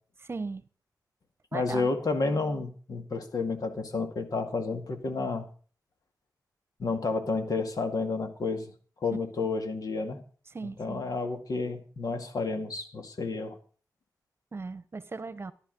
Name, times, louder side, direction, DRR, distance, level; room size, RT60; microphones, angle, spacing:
voice 1, 0.2-0.6 1.5-1.9 10.5-11.0 14.5-15.5, right 4 dB, 40° right, 1.0 m, -37 dB
voice 2, 1.5-5.5 6.8-8.7 9.0-10.2 10.6-13.6, left 3 dB, 65° left, 2.2 m, -31 dB
14.0 x 11.5 x 5.3 m
wide cardioid pair, 100°, 7 cm